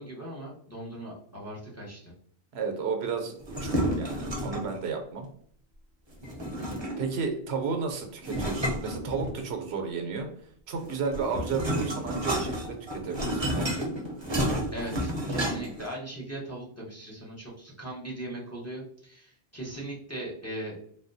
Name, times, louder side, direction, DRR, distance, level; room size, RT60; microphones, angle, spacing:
voice 1, 0.0-2.1 14.7-20.7, right 1 dB, 15° left, -3 dB, 0.7 m, -39 dB
voice 2, 2.5-5.3 7.0-10.3 10.7-13.9, right 5 dB, 80° right, 5 dB, 0.9 m, -33 dB
sound 1, 3.4-4.8 6.2-7.2 8.2-9.6 10.8-15.9, equal, 30° right, 0.7 m, -31 dB
3.6 x 2.2 x 2.6 m, 0.63 s
omnidirectional pair, 1.1 m